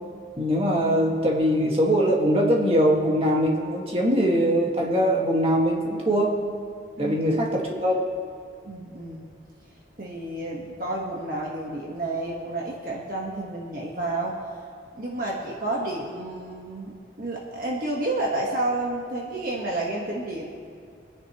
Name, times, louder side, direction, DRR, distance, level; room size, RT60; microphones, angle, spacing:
voice 1, 0.4-6.4 7.0-8.0, equal, 30° right, -2 dB, 1.8 m, -22 dB
voice 2, 8.6-9.3 10.0-14.4 14.9-20.5, right 2 dB, 50° right, -2 dB, 1.4 m, -30 dB
25.0 x 10.0 x 3.1 m, 2.4 s
head